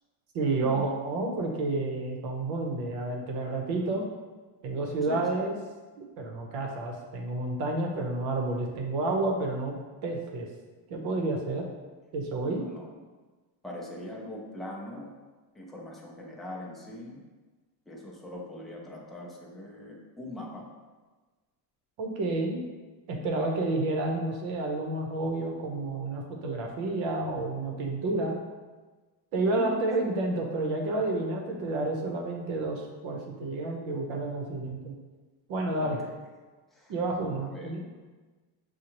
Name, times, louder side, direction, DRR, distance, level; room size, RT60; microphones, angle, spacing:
voice 1, 0.3-4.0 4.6-5.5 6.0-9.7 10.0-10.5 10.9-11.7 12.1-12.6 22.0-22.6 23.1-28.4 29.3-34.9 35.5-36.0 36.9-37.8, right 2 dB, 75° right, 1 dB, 1.0 m, -30 dB
voice 2, 5.0-5.5 12.6-12.9 13.6-15.1 15.5-17.2 17.9-20.7 29.5-29.8 35.8-36.2 36.7-36.9 37.3-37.7, left 1 dB, ahead, -3 dB, 0.4 m, -41 dB
6.4 x 2.3 x 2.9 m, 1.3 s
cardioid pair, 140°, 47 cm